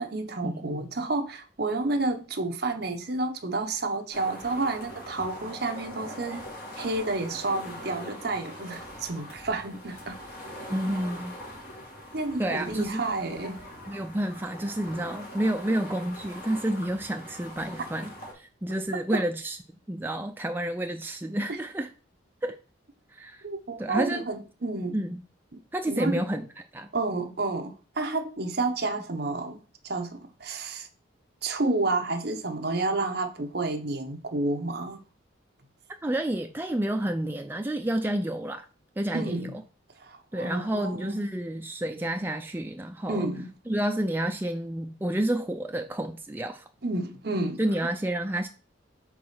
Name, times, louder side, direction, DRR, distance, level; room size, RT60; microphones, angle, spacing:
voice 1, 0.0-6.4 6.8-10.2 12.1-13.6 18.9-19.2 21.5-21.6 23.4-25.0 25.5-25.6 25.9-26.2 26.9-30.9 31.4-35.0 39.1-39.5 40.0-41.2 43.1-43.5 46.8-47.9, right 2 dB, 55° right, 0.8 m, -30 dB
sound 1, 4.1-18.3, equal, 50° left, 2.2 m, -42 dB
voice 2, 10.7-11.3 12.4-13.0 13.9-19.6 19.9-21.9 22.4-22.6 23.1-23.4 23.8-24.2 24.9-25.2 25.7-26.5 26.7-26.9 36.0-38.7 39.0-39.5 40.3-43.3 43.7-46.7 47.6-48.5, right 1 dB, 10° right, 0.4 m, -30 dB
4.8 x 4.1 x 5.6 m
head